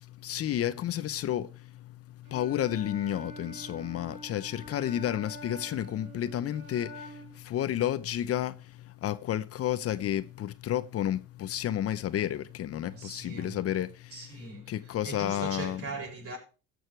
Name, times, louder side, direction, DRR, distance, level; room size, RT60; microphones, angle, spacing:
voice 1, 0.0-15.8, left 11 dB, 55° left, 0.7 m, -32 dB
Wind instrument woodwind instrument, 2.2-7.4, right 1 dB, 75° right, 4.9 m, -46 dB
voice 2, 12.9-13.6 14.1-16.4, right 4 dB, 50° right, 6.5 m, -40 dB
16.0 x 6.4 x 4.5 m
supercardioid pair, 90°, 29 cm